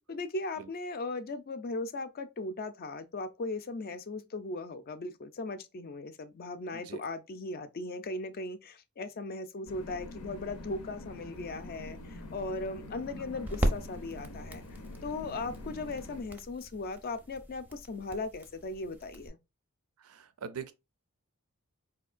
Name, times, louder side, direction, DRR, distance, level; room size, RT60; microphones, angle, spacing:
voice 1, 0.1-14.6 15.0-19.4, left 2 dB, 40° left, 0.4 m, -38 dB
voice 2, 6.7-7.0 13.1-13.4 20.0-20.7, right 6 dB, 70° right, 0.5 m, -44 dB
sound 1, 9.7-16.2, left 2 dB, 90° left, 0.6 m, -45 dB
sound 2, 11.4-19.3, equal, 10° right, 0.5 m, -38 dB
4.3 x 2.7 x 2.4 m
head